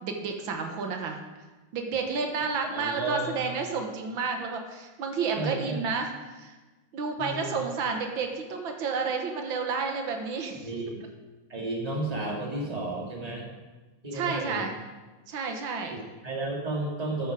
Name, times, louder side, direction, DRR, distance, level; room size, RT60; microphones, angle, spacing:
voice 1, 0.0-1.2 1.7-6.6 6.9-10.7 14.1-14.7 15.3-16.0, right 5 dB, 85° right, 4 dB, 2.0 m, -31 dB
voice 2, 2.6-3.6 5.3-5.9 7.2-7.6 10.6-11.0 11.5-13.4 14.0-14.7 15.9-17.3, right 2 dB, 20° right, -1 dB, 2.1 m, -33 dB
13.0 x 8.2 x 4.9 m, 1.2 s
omnidirectional pair, 2.1 m